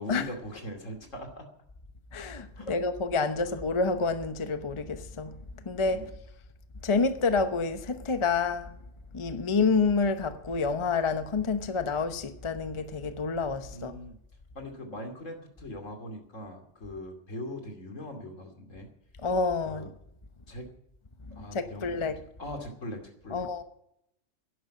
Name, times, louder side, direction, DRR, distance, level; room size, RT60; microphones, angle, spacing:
voice 1, 0.0-1.5 2.5-2.8 5.9-6.1 13.7-14.2 14.5-18.9 19.6-19.9 20.5-20.7 21.4-21.9 22.4-23.5, left 1 dB, 80° left, 3.0 m, -40 dB
voice 2, 2.1-5.3 5.7-6.0 6.8-8.7 9.1-13.9 19.2-19.9 21.3-22.2 23.3-23.6, left 4 dB, 25° left, 0.8 m, -28 dB
11.0 x 11.0 x 9.2 m
omnidirectional pair, 1.3 m